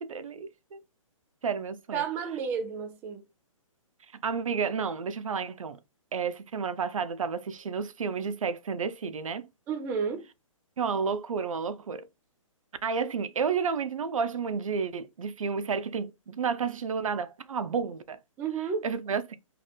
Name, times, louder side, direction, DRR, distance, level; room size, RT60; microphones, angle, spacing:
voice 1, 0.0-0.8 1.4-2.1 4.2-5.8 6.1-9.5 10.8-12.1 12.8-18.2 18.8-19.3, right 6 dB, 70° right, 0.5 m, -31 dB
voice 2, 1.9-3.3 9.7-10.2 18.4-18.8, right 6 dB, 10° right, 0.3 m, -31 dB
2.8 x 2.5 x 3.2 m
figure-of-eight pair, 130°, 17 cm